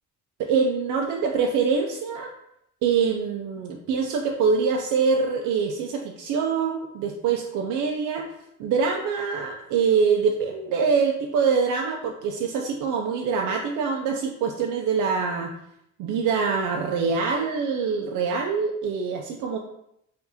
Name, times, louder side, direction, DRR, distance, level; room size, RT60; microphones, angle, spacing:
voice 1, 0.4-2.3 2.8-8.3 8.6-15.5 16.0-19.6, right 5 dB, 85° right, 1 dB, 0.5 m, -24 dB
4.7 x 2.6 x 2.7 m, 0.79 s
cardioid pair, 90°, 30 cm